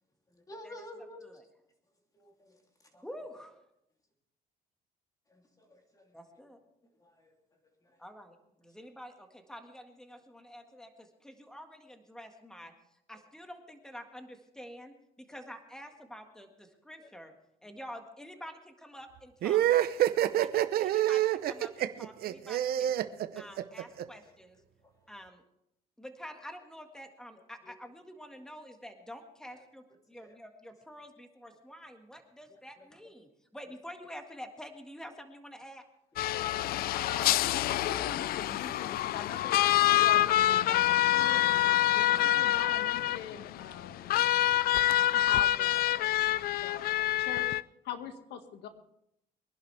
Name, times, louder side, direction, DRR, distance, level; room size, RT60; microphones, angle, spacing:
voice 1, 0.3-1.4 2.1-2.6 2.9-3.1 5.3-6.2 7.0-7.3 7.8-8.0 12.6-12.7 15.3-15.4 17.0-17.1 17.6-17.7 20.3-20.4 24.8-24.9 27.6-27.7 29.5-29.6 30.1-30.4 31.5-31.6 32.5-32.9 36.1-36.2, left 1 dB, 20° left, 2 dB, 2.9 m, -53 dB
voice 2, 3.0-3.6 6.1-6.6 8.0-8.4 8.6-12.7 13.1-17.3 17.6-19.6 20.4-22.9 23.4-24.6 25.1-25.4 26.0-35.8, equal, 5° left, 5 dB, 1.7 m, -48 dB
sound 1, 19.4-24.0, right 12 dB, 65° right, 0.8 m, -27 dB
sound 2, 36.2-47.6, left 14 dB, 65° left, 0.4 m, -27 dB
voice 3, 36.9-37.4 37.7-41.5 41.9-44.1 45.1-46.1 46.5-47.5 47.8-48.7, left 8 dB, 85° left, 7 dB, 1.8 m, -42 dB
23.0 x 11.0 x 3.4 m, 0.80 s
cardioid pair, 110°, 17 cm